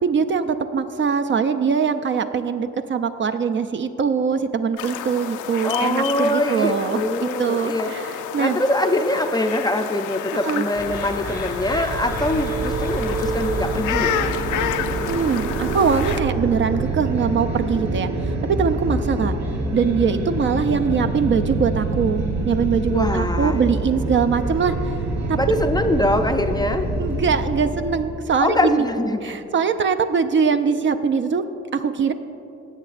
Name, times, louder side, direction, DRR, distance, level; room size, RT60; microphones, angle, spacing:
voice 1, 0.0-8.0 8.3-8.6 10.3-10.7 15.1-18.1 18.4-19.3 19.7-24.9 25.3-25.4 27.0-28.9 29.2-31.4 31.7-32.1, right 6 dB, 40° right, 8 dB, 0.4 m, -22 dB
sound 1, 4.8-16.2, left 9 dB, 80° left, 0.5 m, -30 dB
voice 2, 5.6-7.9 8.4-14.2 22.9-23.6 25.3-26.9 28.4-29.4, left 1 dB, 15° left, 6 dB, 0.4 m, -23 dB
sound 2, 10.7-28.2, right 2 dB, 65° right, 1.5 m, -26 dB
17.0 x 7.6 x 2.5 m, 2.8 s
cardioid pair, 90°, 30 cm